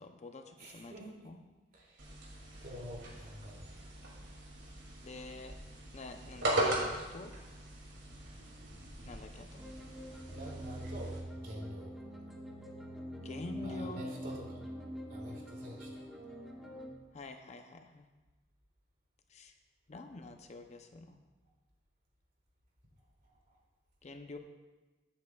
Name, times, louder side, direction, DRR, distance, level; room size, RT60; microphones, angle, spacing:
voice 1, 0.0-0.9 1.2-1.4 5.0-5.5 5.9-7.3 9.1-9.6 13.2-14.0 17.1-18.1 19.3-19.5 19.9-21.2 24.0-24.4, left 2 dB, 40° left, 6 dB, 0.6 m, -46 dB
voice 2, 0.6-1.1 1.7-2.1 2.6-3.7 10.3-12.0 13.6-14.6 15.1-16.0 23.2-23.5, equal, 50° right, -2 dB, 2.6 m, -47 dB
sound 1, 2.0-11.2, right 1 dB, 75° right, 2.5 m, -39 dB
sound 2, 9.6-16.9, equal, ahead, 1.1 m, -44 dB
15.0 x 8.5 x 2.3 m, 1.2 s
head